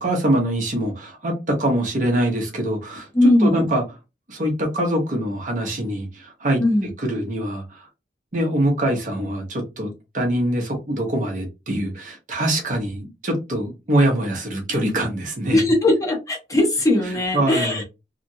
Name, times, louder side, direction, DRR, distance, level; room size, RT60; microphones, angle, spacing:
voice 1, 0.0-3.1 3.4-3.8 4.3-7.9 8.3-15.6 17.3-17.8, right 1 dB, 45° right, 0.9 m, -24 dB
voice 2, 3.1-3.7 6.6-6.9 15.5-17.8, left 1 dB, 20° left, 0.8 m, -19 dB
2.9 x 2.4 x 2.7 m
head